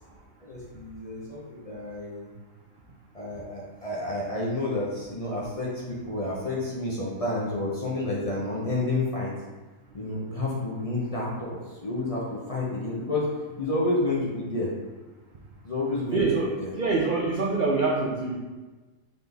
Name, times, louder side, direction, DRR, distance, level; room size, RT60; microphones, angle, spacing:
voice 1, 0.4-2.3 3.1-9.3 9.9-13.3 13.6-14.7 15.6-16.7, left 2 dB, 35° left, -6 dB, 0.6 m, -30 dB
voice 2, 16.1-18.4, right 3 dB, 65° right, -1 dB, 0.4 m, -25 dB
4.0 x 3.8 x 3.4 m, 1.3 s
omnidirectional pair, 1.4 m